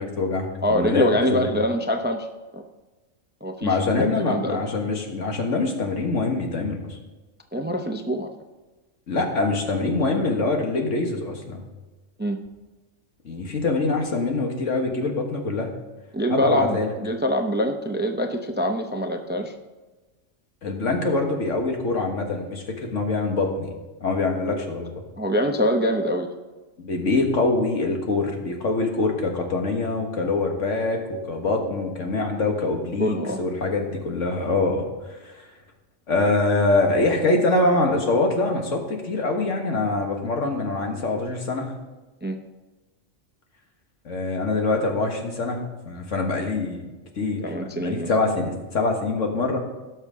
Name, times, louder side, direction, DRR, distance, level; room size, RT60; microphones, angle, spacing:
voice 1, 0.0-1.5 3.6-7.0 9.1-11.6 13.3-15.7 16.3-16.9 20.6-23.7 24.0-25.0 26.8-34.9 35.2-35.3 36.1-41.7 44.1-49.6, left 3 dB, 75° left, 2 dB, 1.9 m, -24 dB
voice 2, 0.6-2.3 2.5-2.6 3.4-4.6 7.5-8.3 12.2-12.4 16.1-19.5 25.2-26.3 33.0-33.4 42.2-42.4 47.4-48.1, equal, 10° right, 5 dB, 0.5 m, -24 dB
17.5 x 6.5 x 3.6 m, 1.2 s
omnidirectional pair, 1.3 m